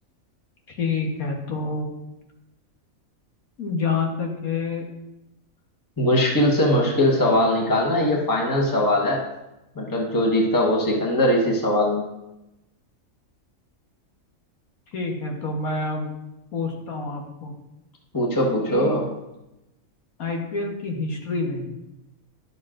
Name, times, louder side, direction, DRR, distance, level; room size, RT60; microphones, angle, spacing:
voice 1, 0.7-1.9 3.6-4.9 14.9-16.1 16.5-17.5 18.7-19.0 20.2-21.6, left 4 dB, 85° left, 1 dB, 1.8 m, -27 dB
voice 2, 6.0-9.2 9.7-12.0 18.1-19.0, left 1 dB, 15° left, -2 dB, 1.2 m, -21 dB
11.5 x 6.7 x 2.5 m, 0.94 s
omnidirectional pair, 1.5 m